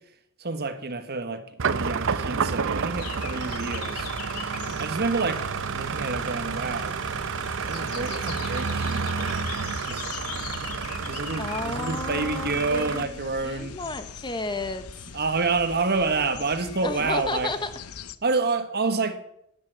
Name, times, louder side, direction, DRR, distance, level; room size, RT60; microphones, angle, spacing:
voice 1, 0.4-4.1 4.8-7.0 7.6-9.1 9.9-10.1 11.1-13.8 15.1-17.5 18.2-19.2, right 3 dB, 45° right, 1.4 m, -28 dB
sound 1, 1.6-13.0, right 5 dB, 60° right, 0.7 m, -30 dB
sound 2, 2.9-18.2, left 7 dB, 80° left, 0.8 m, -41 dB
voice 2, 11.4-15.1 16.8-17.7, left 3 dB, 20° left, 1.1 m, -32 dB
11.0 x 10.5 x 9.0 m
head